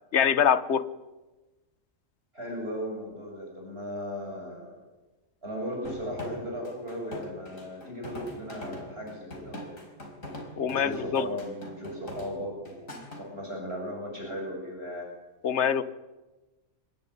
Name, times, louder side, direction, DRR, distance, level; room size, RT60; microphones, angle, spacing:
voice 1, 0.1-0.9 10.6-11.3 15.4-15.8, left 8 dB, 60° left, 13 dB, 1.3 m, -24 dB
voice 2, 2.3-4.8 5.4-9.8 10.6-15.1, equal, 50° right, 0 dB, 7.4 m, -37 dB
sound 1, 5.8-13.2, left 1 dB, 85° left, 5.4 m, -42 dB
25.5 x 21.0 x 9.9 m, 1.1 s
omnidirectional pair, 1.3 m